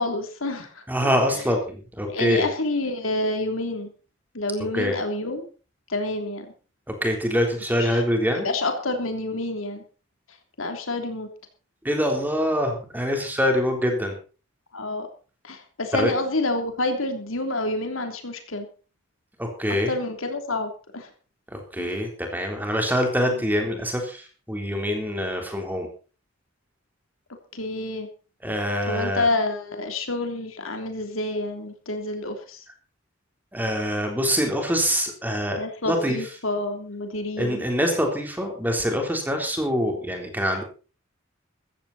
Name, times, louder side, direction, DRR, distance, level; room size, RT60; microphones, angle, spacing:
voice 1, 0.0-0.8 2.1-3.9 4.3-5.5 5.9-6.5 7.9-8.0 8.3-9.8 10.6-11.3 14.7-15.1 15.4-18.7 19.9-21.1 21.8-21.9 27.5-28.1 28.9-32.6 35.6-37.6, left 2 dB, 90° left, 5 dB, 3.2 m, -28 dB
voice 2, 0.9-2.5 4.7-5.0 6.9-8.5 11.8-14.2 15.9-16.1 19.4-19.9 21.5-25.9 28.4-29.3 33.5-36.3 37.4-40.6, equal, 10° right, 3 dB, 3.7 m, -25 dB
15.5 x 14.5 x 4.2 m, 0.37 s
head